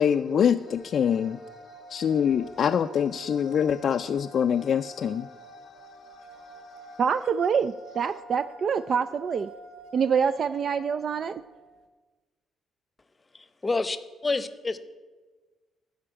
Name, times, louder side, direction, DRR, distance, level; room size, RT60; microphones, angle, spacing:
voice 1, 0.0-7.0, left 8 dB, 60° left, 0.3 m, -26 dB
sound 1, 0.7-11.8, right 3 dB, 85° right, 1.1 m, -48 dB
voice 2, 7.0-9.5 9.9-11.3, right 6 dB, 55° right, 0.3 m, -26 dB
voice 3, 13.3-14.0 14.2-14.8, left 3 dB, 25° left, 0.7 m, -28 dB
12.0 x 5.2 x 8.8 m
cardioid pair, 90°, 0 cm